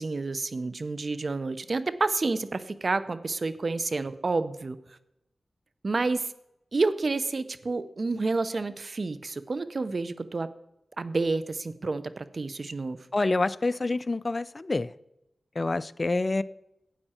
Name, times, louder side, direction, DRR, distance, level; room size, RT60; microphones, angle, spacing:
voice 1, 0.0-4.8 5.8-6.3 6.7-10.5 11.0-13.0, right 3 dB, 60° right, 14 dB, 0.7 m, -29 dB
voice 2, 13.1-14.9 15.6-16.4, left 2 dB, 45° left, 17 dB, 0.4 m, -27 dB
12.5 x 8.8 x 4.4 m, 0.86 s
cardioid pair, 40°, 0 cm